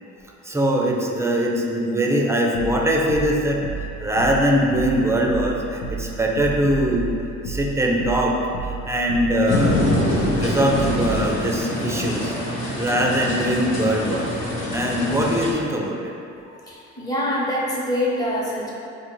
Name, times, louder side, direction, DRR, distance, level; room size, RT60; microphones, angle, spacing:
voice 1, 0.4-3.6 4.0-7.1 7.4-9.8 10.3-12.3 12.8-14.3 14.7-16.1, equal, 10° right, -1 dB, 0.4 m, -22 dB
sound 1, 2.5-11.3, right 4 dB, 85° left, 0.6 m, -32 dB
sound 2, 9.5-15.5, left 1 dB, 60° left, 0.9 m, -25 dB
voice 2, 16.4-18.7, left 1 dB, 10° left, -6 dB, 0.9 m, -25 dB
4.6 x 2.4 x 3.0 m, 2.5 s
cardioid pair, 90°, 30 cm